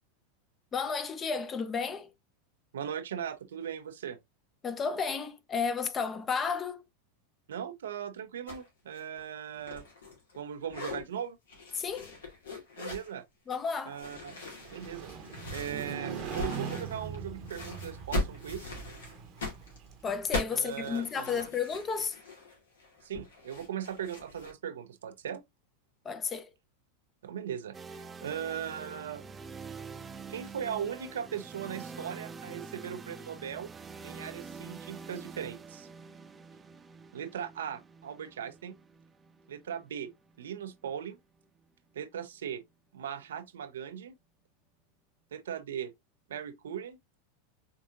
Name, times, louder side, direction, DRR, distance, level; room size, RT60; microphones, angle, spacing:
voice 1, 0.7-2.1 4.6-6.8 11.7-12.1 13.5-14.0 20.0-22.2 26.0-26.5, left 5 dB, 25° left, 0.7 m, -32 dB
voice 2, 2.7-4.2 7.5-9.8 10.4-11.4 12.8-13.2 13.9-14.4 14.7-15.1 15.5-18.7 20.5-21.5 23.0-25.4 27.2-29.3 30.3-33.7 34.0-35.9 37.1-38.7 39.5-40.1 40.4-41.2 41.9-42.6 42.9-44.1 45.3-45.9 46.3-47.0, right 8 dB, 75° right, 0.6 m, -38 dB
sound 1, 8.5-8.7 8.9-10.4 10.6-11.0 11.5-13.1 13.9-17.2 17.5-24.5, left 2 dB, 80° left, 2.0 m, -40 dB
Motorcycle, 14.5-20.4, right 6 dB, 45° right, 0.9 m, -41 dB
sound 2, 27.7-41.6, right 5 dB, 20° right, 0.4 m, -46 dB
4.6 x 3.5 x 2.5 m
hypercardioid pair, 95°, 0 cm